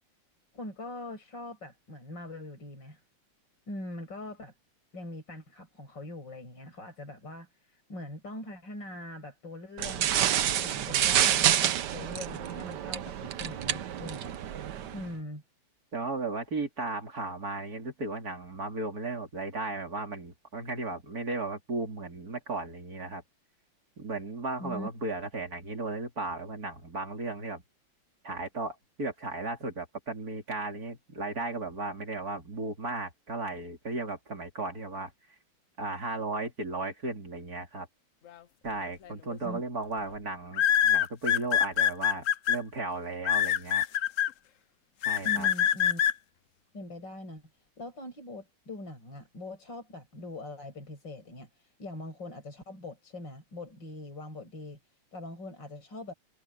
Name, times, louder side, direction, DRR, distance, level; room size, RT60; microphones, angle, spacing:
voice 1, 0.5-3.0 3.7-4.5 4.9-10.2 10.6-14.3 14.9-15.4 24.6-24.9 39.4-39.6 45.2-46.0 46.7-47.4 47.8-54.8 55.1-56.1, left 1 dB, 55° left, 7.8 m, -42 dB
sound 1, 9.8-15.1, right 10 dB, 60° right, 1.3 m, -28 dB
voice 2, 15.9-23.2 24.0-27.6 28.2-35.1 35.8-37.9 38.6-43.9 45.0-45.5, right 3 dB, 45° right, 3.9 m, -35 dB
sound 2, 39.0-39.3 40.5-42.6 43.2-44.3 45.0-46.1, left 10 dB, 85° left, 0.7 m, -24 dB
omnidirectional pair, 2.3 m